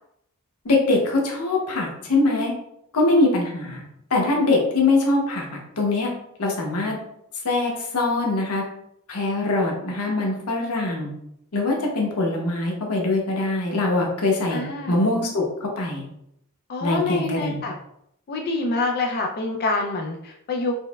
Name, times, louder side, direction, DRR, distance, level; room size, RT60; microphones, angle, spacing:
voice 1, 0.6-2.5 2.9-3.8 4.1-5.4 5.8-6.1 6.4-7.0 7.4-8.6 9.1-11.1 11.5-14.6 14.9-16.1 16.8-17.6, left 2 dB, 85° left, 0 dB, 0.8 m, -22 dB
voice 2, 14.5-15.0 16.7-17.7 18.3-20.7, left 3 dB, 45° left, 2 dB, 0.3 m, -26 dB
4.4 x 2.0 x 2.2 m, 0.76 s
head